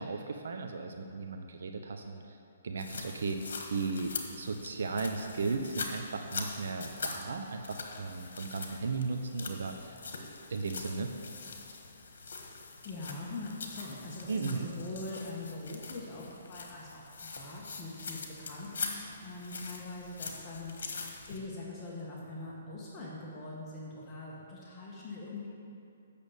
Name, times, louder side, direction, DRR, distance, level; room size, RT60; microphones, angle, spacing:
voice 1, 0.0-2.4 2.6-3.4 3.7-10.0 10.5-11.1 14.3-14.7, right 4 dB, 70° right, 5 dB, 0.7 m, -36 dB
sound 1, 2.8-21.4, left 4 dB, 70° left, 1.4 m, -43 dB
voice 2, 12.8-25.5, left 2 dB, 20° left, -5 dB, 1.4 m, -43 dB
8.3 x 6.8 x 7.3 m, 2.6 s
hypercardioid pair, 160°, 0 cm